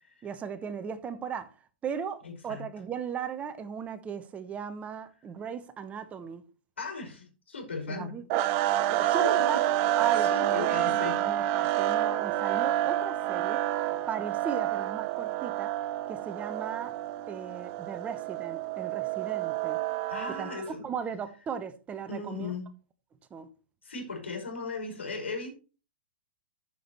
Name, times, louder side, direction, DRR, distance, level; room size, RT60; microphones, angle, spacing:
voice 1, 0.2-1.5 1.8-6.4 7.9-8.2 8.9-9.7 9.9-13.6 14.1-15.7 16.1-16.9 17.3-19.8 20.3-22.5 23.3-23.5, right 7 dB, 20° right, 1.0 m, -37 dB
voice 2, 2.2-2.7 6.8-8.1 9.0-9.6 10.2-12.0 20.1-20.8 22.1-22.7 23.8-25.5, left 4 dB, 80° left, 5.2 m, -38 dB
sound 1, 8.3-20.7, right 13 dB, 40° right, 0.7 m, -28 dB
13.5 x 7.1 x 3.1 m
figure-of-eight pair, 110°, 6 cm